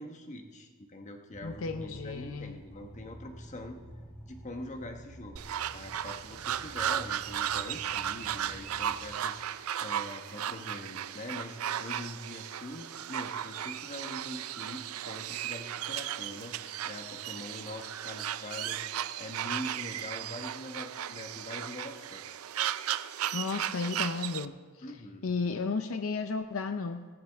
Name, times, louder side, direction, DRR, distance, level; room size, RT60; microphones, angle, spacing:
voice 1, 0.0-3.8 4.3-5.4 5.7-22.4 24.8-25.3, left 1 dB, 35° left, 4 dB, 1.3 m, -43 dB
sound 1, 1.3-9.2, right 1 dB, 10° left, 1.7 m, -50 dB
voice 2, 1.4-2.6 23.3-24.6 25.2-27.1, left 4 dB, 65° left, 8 dB, 0.6 m, -33 dB
sound 2, 5.4-24.5, right 10 dB, 85° right, 0.5 m, -35 dB
18.0 x 15.0 x 3.5 m, 1.5 s
head